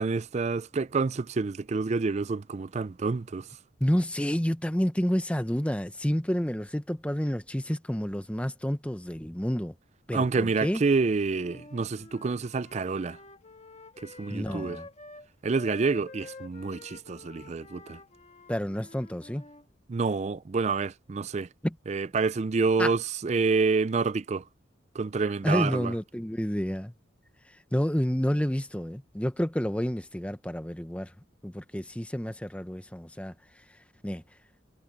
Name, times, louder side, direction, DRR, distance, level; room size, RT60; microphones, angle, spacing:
voice 1, 0.0-3.5 10.1-13.2 14.0-14.8 15.4-18.0 19.9-21.5 21.9-24.4 24.9-25.9, right 4 dB, 35° right, 0.4 m, -28 dB
voice 2, 3.8-9.7 10.1-10.8 14.3-14.9 18.5-19.4 21.6-21.7 22.8-22.9 25.4-26.9 27.7-31.1 31.4-33.3 34.0-34.2, equal, 5° left, 0.8 m, -29 dB
Wind instrument woodwind instrument, 11.3-19.6, left 2 dB, 30° left, 1.6 m, -49 dB
head